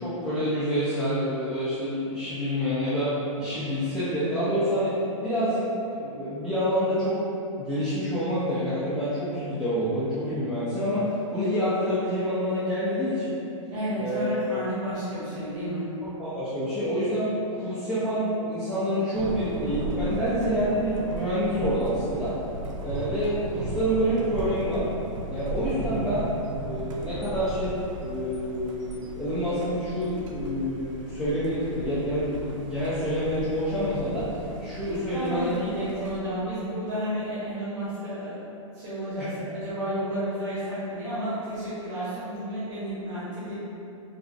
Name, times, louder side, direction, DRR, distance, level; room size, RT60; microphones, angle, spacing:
voice 1, 0.0-4.9 5.2-7.2 7.6-13.4 14.0-14.2 16.2-22.3 22.8-24.9 25.3-26.3 26.6-35.5 39.2-39.3, equal, ahead, -15 dB, 0.4 m, -27 dB
voice 2, 13.7-15.9 35.1-38.4 38.7-43.5, right 1 dB, 55° right, -13 dB, 1.1 m, -31 dB
Thunder, 19.2-36.2, right 2 dB, 70° right, 0.5 m, -36 dB
3.9 x 2.4 x 2.4 m, 2.8 s
hypercardioid pair, 155°, 17 cm